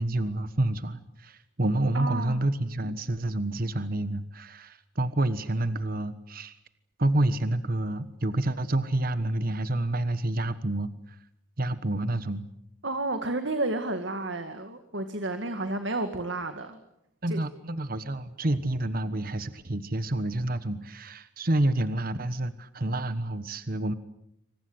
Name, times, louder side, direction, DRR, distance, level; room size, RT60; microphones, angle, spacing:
voice 1, 0.0-6.5 7.0-11.2 11.6-12.5 17.2-23.9, right 1 dB, 45° right, 12 dB, 1.2 m, -28 dB
voice 2, 1.9-2.5 12.8-16.8 17.3-17.4, right 2 dB, 65° right, 8 dB, 2.1 m, -31 dB
27.0 x 26.0 x 8.0 m, 0.78 s
head